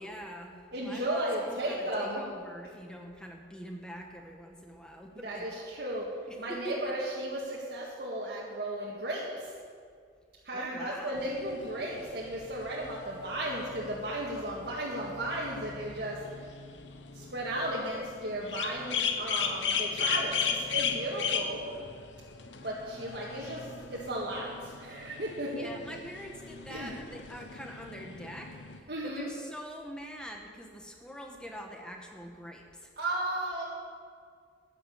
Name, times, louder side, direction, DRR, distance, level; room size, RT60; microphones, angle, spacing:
voice 1, 0.0-5.6 6.3-6.8 10.5-11.3 25.5-32.9, equal, 5° left, 1 dB, 1.3 m, -44 dB
voice 2, 0.7-2.3 5.2-6.1 6.4-9.5 10.4-16.5 17.1-21.6 22.6-25.7 26.7-26.9 28.9-29.3 33.0-33.6, right 1 dB, 65° right, -5 dB, 1.8 m, -35 dB
sound 1, 11.2-28.8, left 6 dB, 90° left, 0.9 m, -37 dB
10.5 x 10.5 x 7.2 m, 2.1 s
head